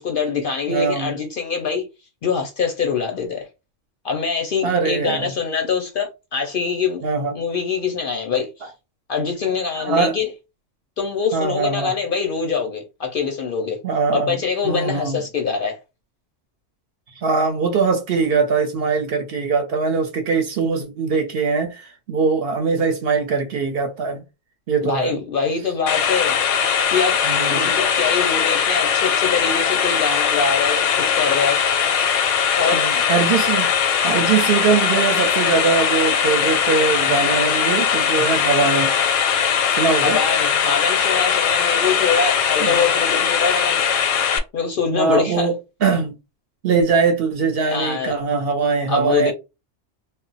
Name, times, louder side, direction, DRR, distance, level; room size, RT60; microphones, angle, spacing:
voice 1, 0.0-1.9 2.2-3.5 4.0-7.0 7.3-8.7 9.1-10.3 11.0-13.8 14.1-15.8 24.8-26.4 26.9-27.2 27.5-31.6 32.6-32.9 40.0-43.9 44.5-45.5 47.7-48.2 48.9-49.3, left 5 dB, 60° left, 0.6 m, -24 dB
voice 2, 0.7-1.1 4.6-5.3 7.0-7.3 8.6-8.7 9.7-10.2 11.3-11.9 13.8-14.4 14.6-15.2 17.2-24.2 24.7-25.1 27.2-27.7 32.7-33.7 34.0-38.9 39.8-40.2 42.6-42.8 44.9-45.5 45.8-46.1 46.6-49.3, right 5 dB, 60° right, 0.7 m, -21 dB
sound 1, 25.9-44.4, left 7 dB, 90° left, 0.9 m, -20 dB
2.2 x 2.0 x 3.8 m
omnidirectional pair, 1.3 m